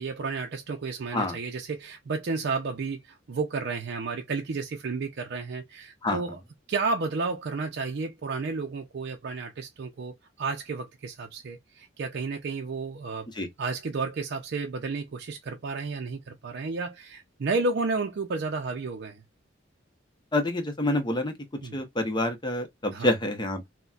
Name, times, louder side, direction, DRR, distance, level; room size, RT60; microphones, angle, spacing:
voice 1, 0.0-6.4 6.7-13.3 13.6-19.2 21.6-21.8 22.9-23.1, right 4 dB, 60° right, 0.5 m, -32 dB
voice 2, 20.3-21.3 21.7-23.7, left 1 dB, 25° left, 0.7 m, -27 dB
4.0 x 2.1 x 2.3 m
head